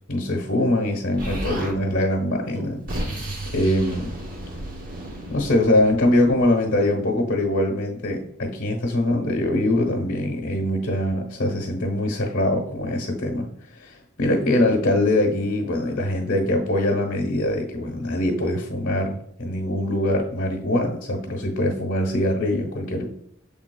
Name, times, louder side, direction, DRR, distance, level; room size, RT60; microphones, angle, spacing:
voice 1, 0.1-3.3 3.5-4.1 5.3-13.5 13.8-23.0, left 1 dB, 85° left, 0 dB, 0.9 m, -23 dB
Explosion, 1.2-1.8 2.5-6.4, right 1 dB, 45° right, 0.8 m, -33 dB
6.6 x 3.6 x 2.2 m, 0.66 s
head